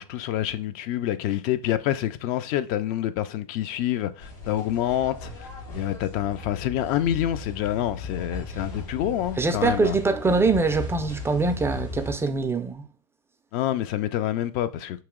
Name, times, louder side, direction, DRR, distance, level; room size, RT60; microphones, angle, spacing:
voice 1, 0.0-5.5 5.7-10.0 13.5-15.0, left 12 dB, 55° left, 0.4 m, -27 dB
sound 1, 4.2-12.1, left 2 dB, 90° left, 1.4 m, -37 dB
voice 2, 9.4-12.8, right 3 dB, 15° right, 0.3 m, -23 dB
3.0 x 2.8 x 3.6 m
hypercardioid pair, 105°, 18 cm